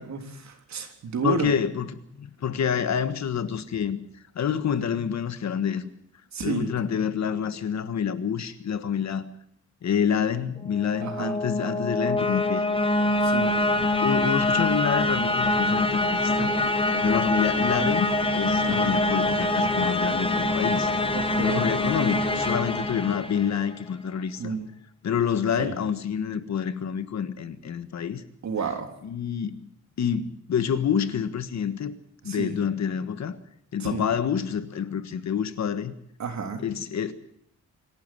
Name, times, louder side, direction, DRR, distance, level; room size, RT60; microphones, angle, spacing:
voice 1, 0.0-1.5 6.3-6.7 11.0-11.3 13.2-13.5 18.6-19.0 21.1-21.7 24.4-24.7 25.6-25.8 28.4-28.9 32.2-32.5 33.8-34.0 36.2-36.6, right 5 dB, 70° right, 5 dB, 3.4 m, -31 dB
voice 2, 1.2-4.0 4.3-5.9 6.4-9.2 9.8-12.6 13.6-13.7 14.0-16.5 17.0-20.9 21.4-24.6 25.0-28.2 29.0-29.6 30.0-31.9 32.2-33.4 33.7-35.9 36.6-37.1, left 7 dB, 65° left, 12 dB, 1.6 m, -27 dB
sound 1, 10.7-23.7, left 2 dB, 20° left, 1.6 m, -25 dB
26.5 x 12.0 x 9.1 m, 0.72 s
wide cardioid pair, 175°, 29 cm